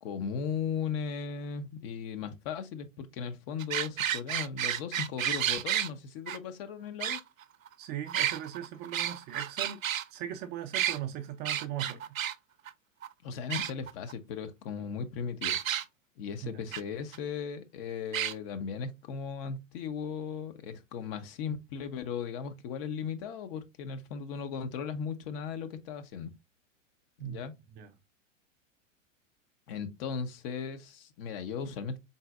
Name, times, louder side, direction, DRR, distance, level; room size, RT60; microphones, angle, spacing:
voice 1, 0.0-7.2 13.2-15.6 16.2-26.3 27.2-27.5 29.7-32.0, left 6 dB, 45° left, 0.8 m, -37 dB
sound 1, 3.6-5.9 6.3-6.4 7.0-7.7 8.1-10.0 10.7-11.0 11.4-12.3 12.7-12.8 13.0-13.1 13.5-14.1 15.4-15.8 16.7-16.8 17.1-17.2 18.1-18.3, right 10 dB, 85° right, 0.5 m, -31 dB
voice 2, 7.8-9.8 10.1-12.1 16.4-16.6 27.2-27.4 27.8-27.9, right 10 dB, 25° right, 0.4 m, -39 dB
4.1 x 3.8 x 2.4 m
hypercardioid pair, 100°, 39 cm